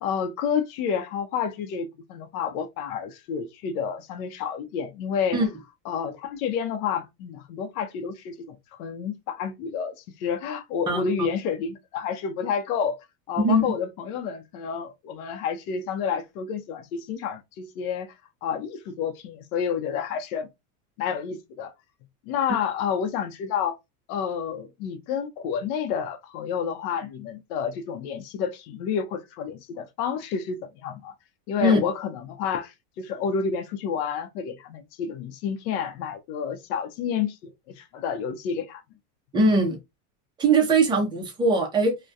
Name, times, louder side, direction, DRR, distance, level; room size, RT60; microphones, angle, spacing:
voice 1, 0.0-5.4 5.9-18.1 18.4-20.5 21.0-21.7 22.3-23.8 24.1-31.1 31.5-38.8, left 7 dB, 70° left, 0.6 m, -30 dB
voice 2, 10.9-11.3 13.4-13.7 31.6-31.9 39.3-39.8 40.4-42.0, right 2 dB, 10° right, 0.4 m, -21 dB
2.2 x 2.2 x 2.5 m
supercardioid pair, 125°, 48 cm